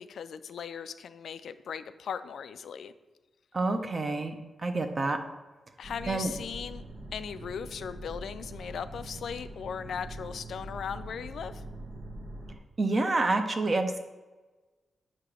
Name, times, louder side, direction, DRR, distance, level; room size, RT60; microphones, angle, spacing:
voice 1, 0.0-2.9 5.8-6.8 7.1-11.6, left 7 dB, 70° left, 12 dB, 0.4 m, -38 dB
voice 2, 3.5-4.4 4.6-5.2 6.1-6.3 12.8-14.0, right 2 dB, 30° right, 7 dB, 0.6 m, -27 dB
sound 1, 5.8-12.6, right 1 dB, 80° right, 1.5 m, -43 dB
8.1 x 2.9 x 6.1 m, 1.2 s
wide cardioid pair, 155°, 0 cm